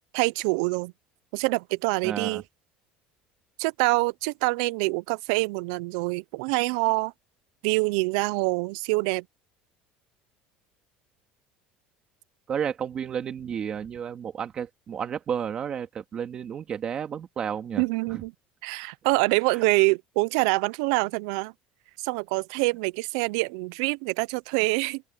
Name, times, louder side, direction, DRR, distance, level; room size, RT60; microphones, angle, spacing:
voice 1, 0.1-0.9 1.3-2.4 3.6-7.1 7.6-9.2 17.8-18.3 18.6-21.5 22.0-25.0, right 26 dB, 80° right, 0.5 m, -25 dB
voice 2, 2.0-2.4 12.5-18.2, right 8 dB, 25° right, 2.2 m, -32 dB
open air
cardioid pair, 170°, 3 cm